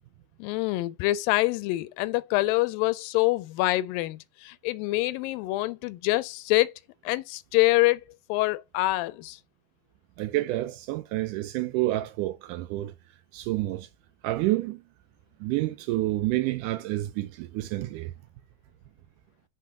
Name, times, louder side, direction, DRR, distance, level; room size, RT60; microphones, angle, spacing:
voice 1, 0.4-6.7 7.1-8.0 8.3-9.4, left 19 dB, 85° left, 2.3 m, -25 dB
voice 2, 10.2-12.9 13.3-13.9 14.2-14.8 15.4-18.1, right 17 dB, 80° right, 1.9 m, -29 dB
5.2 x 4.1 x 5.8 m
omnidirectional pair, 4.0 m